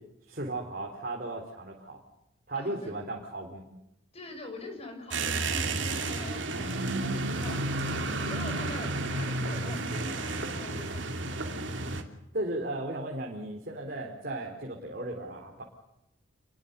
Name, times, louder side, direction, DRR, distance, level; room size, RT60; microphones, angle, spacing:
voice 1, 0.3-2.0 2.5-3.7 12.3-15.6, right 2 dB, 50° right, 0 dB, 3.8 m, -35 dB
voice 2, 2.5-2.9 4.1-7.6 8.2-11.1 11.5-11.6, left 2 dB, 30° left, 4 dB, 5.9 m, -44 dB
sound 1, 5.1-12.0, right 2 dB, 65° right, 2.9 m, -31 dB
28.5 x 22.5 x 6.9 m, 0.86 s
head